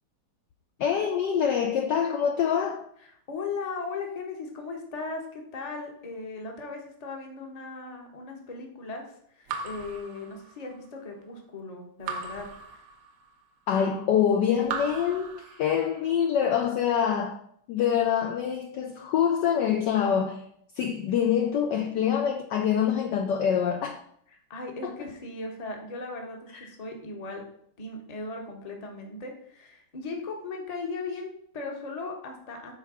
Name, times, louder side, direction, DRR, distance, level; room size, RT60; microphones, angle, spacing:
voice 1, 0.8-2.9 13.7-17.4 17.7-20.4 20.7-24.0 24.8-24.9 26.5-26.6, left 8 dB, 75° left, 1.0 m, -25 dB
voice 2, 3.3-9.0 9.3-12.8 24.5-27.4 27.8-32.7, left 3 dB, 30° left, 0.7 m, -37 dB
Raindrop / Drip, 9.5-10.9 12.1-13.4 14.6-16.1, right 5 dB, 90° right, 1.8 m, -38 dB
5.6 x 4.5 x 6.1 m
omnidirectional pair, 2.3 m